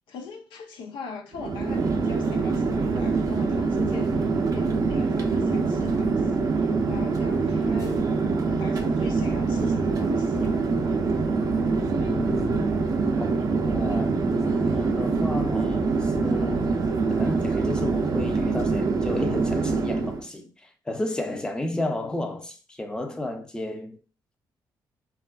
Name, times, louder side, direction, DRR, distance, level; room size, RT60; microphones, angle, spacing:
voice 1, 0.1-8.1 8.5-10.7, left 4 dB, 90° left, 0.5 m, -41 dB
Chatter / Fixed-wing aircraft airplane, 1.3-20.3, right 4 dB, 50° right, 0.5 m, -24 dB
voice 2, 12.0-12.7 13.2-14.2 14.5-24.0, left 1 dB, 10° left, 0.5 m, -32 dB
3.3 x 2.4 x 2.2 m
cardioid pair, 90°, 8 cm